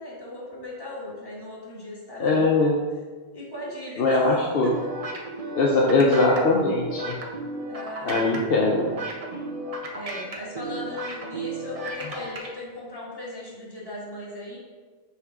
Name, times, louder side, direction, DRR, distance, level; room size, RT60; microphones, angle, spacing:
voice 1, 0.0-2.6 3.3-4.3 4.6-4.9 5.9-6.1 7.5-8.5 9.9-14.6, left 1 dB, 20° left, -7 dB, 1.7 m, -38 dB
voice 2, 2.2-2.8 4.0-4.7 5.6-7.2 8.0-8.9, left 3 dB, 70° left, -1 dB, 0.9 m, -21 dB
sound 1, 4.6-12.5, right 2 dB, 40° right, 0.7 m, -34 dB
5.7 x 3.7 x 4.6 m, 1.4 s
omnidirectional pair, 1.1 m